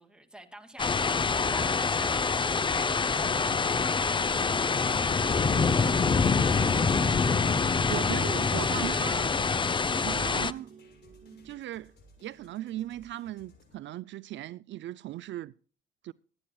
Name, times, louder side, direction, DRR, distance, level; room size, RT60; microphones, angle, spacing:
voice 1, 0.0-5.6 5.9-6.2, right 1 dB, 5° right, 2.5 m, -50 dB
sound 1, 0.8-10.5, left 4 dB, 25° left, 0.6 m, -26 dB
sound 2, 2.6-13.7, left 1 dB, 60° left, 7.1 m, -56 dB
voice 2, 7.9-9.3 10.0-10.7 11.4-11.9 12.2-15.5 16.0-16.1, right 14 dB, 70° right, 0.4 m, -37 dB
sound 3, 8.6-11.5, right 5 dB, 40° right, 4.9 m, -53 dB
23.5 x 9.9 x 2.3 m
cardioid pair, 90°, 20 cm